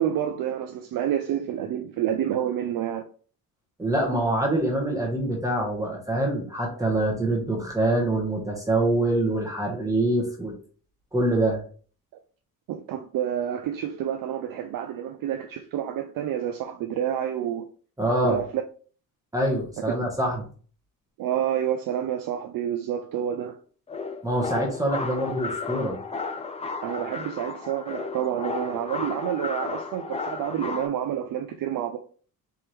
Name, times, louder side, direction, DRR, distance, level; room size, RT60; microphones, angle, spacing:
voice 1, 0.0-3.0 6.8-6.9 12.7-17.6 18.2-18.6 19.8-19.9 21.2-23.6 26.8-32.0, right 10 dB, 60° right, 0.5 m, -28 dB
voice 2, 3.8-10.5 11.1-11.6 18.0-18.4 19.3-20.4 24.2-26.0, right 1 dB, 10° right, 1.2 m, -25 dB
sound 1, 23.9-30.9, left 4 dB, 20° left, 0.4 m, -33 dB
4.4 x 3.5 x 3.2 m
cardioid pair, 135°, 38 cm